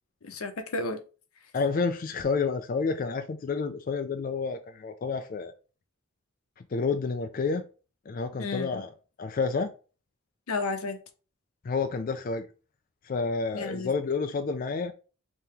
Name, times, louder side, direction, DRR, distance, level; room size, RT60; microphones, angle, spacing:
voice 1, 0.2-1.0 8.4-8.8 10.5-11.0 13.5-13.9, left 3 dB, 85° left, 0.7 m, -32 dB
voice 2, 1.5-5.5 6.7-7.7 8.1-8.9 9.2-9.7 11.6-12.5 13.0-14.9, left 4 dB, 40° left, 0.3 m, -29 dB
5.4 x 2.9 x 3.3 m
head